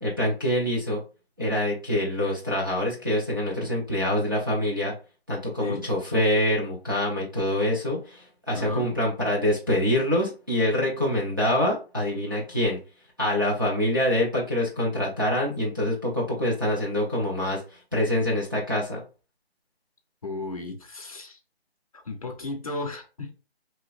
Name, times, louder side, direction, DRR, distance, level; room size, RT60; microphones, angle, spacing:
voice 1, 0.0-1.0 1.4-4.9 5.3-12.8 13.2-17.6 17.9-19.0, left 1 dB, 20° right, 0.5 m, -25 dB
voice 2, 8.5-8.9 20.2-21.4 21.9-23.3, left 2 dB, 35° left, 0.5 m, -34 dB
2.8 x 2.8 x 3.0 m
figure-of-eight pair, 165°, 31 cm